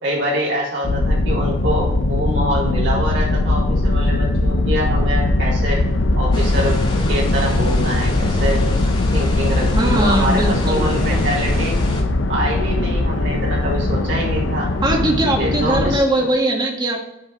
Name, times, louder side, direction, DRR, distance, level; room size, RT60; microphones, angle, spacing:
voice 1, 0.0-5.8 6.2-8.6 9.1-11.8 12.3-14.7 15.3-16.0, equal, 65° right, -5 dB, 3.8 m, -25 dB
sound 1, 0.8-16.0, left 2 dB, 65° left, 0.7 m, -19 dB
sound 2, 6.3-12.0, left 1 dB, 30° left, 2.5 m, -31 dB
voice 2, 9.8-11.3 14.8-17.0, right 1 dB, 20° right, 1 dB, 1.7 m, -20 dB
9.7 x 5.5 x 5.1 m, 0.87 s
head